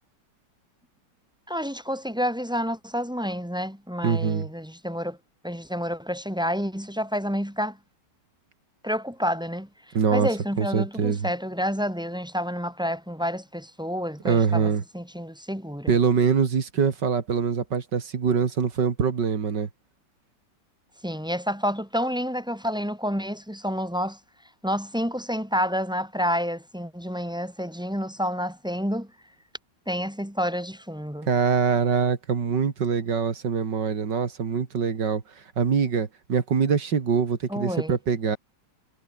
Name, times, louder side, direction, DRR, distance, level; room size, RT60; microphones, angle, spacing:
voice 1, 1.5-5.2 5.4-7.8 8.8-9.7 10.1-15.9 21.0-24.2 24.6-29.1 29.9-31.3 37.5-37.9, equal, 5° right, 1.6 m, -29 dB
voice 2, 4.0-4.5 9.9-10.3 10.6-11.3 14.2-14.8 15.9-19.7 31.3-35.2 35.6-38.4, right 6 dB, 80° right, 2.8 m, -24 dB
omnidirectional pair, 1.9 m